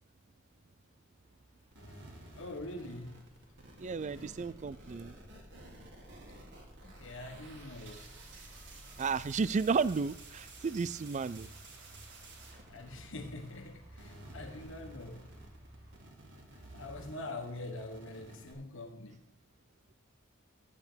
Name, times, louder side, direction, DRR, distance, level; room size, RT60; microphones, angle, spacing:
sound 1, 1.2-16.0, right 1 dB, 85° right, 4.1 m, -58 dB
sound 2, 1.7-13.7 13.9-18.5, right 2 dB, 60° right, 2.3 m, -53 dB
voice 1, 2.3-3.2 6.8-8.1 12.7-15.3 16.7-19.2, left 2 dB, 65° left, 1.5 m, -44 dB
sound 3, 3.4-10.9, left 1 dB, 20° left, 1.6 m, -57 dB
voice 2, 3.8-5.1 9.0-11.5, right 5 dB, 35° right, 0.4 m, -33 dB
11.0 x 8.3 x 5.1 m
head